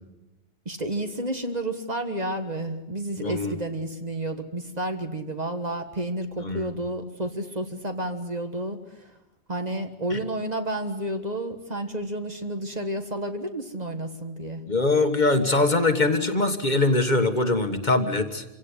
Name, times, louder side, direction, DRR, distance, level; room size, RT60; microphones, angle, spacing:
voice 1, 0.6-9.1 9.5-14.6, right 1 dB, 35° right, 6 dB, 1.7 m, -31 dB
voice 2, 3.2-3.6 6.4-6.7 10.1-10.2 14.7-18.4, left 2 dB, 40° left, 7 dB, 1.7 m, -22 dB
26.5 x 17.0 x 9.8 m, 0.97 s
omnidirectional pair, 1.2 m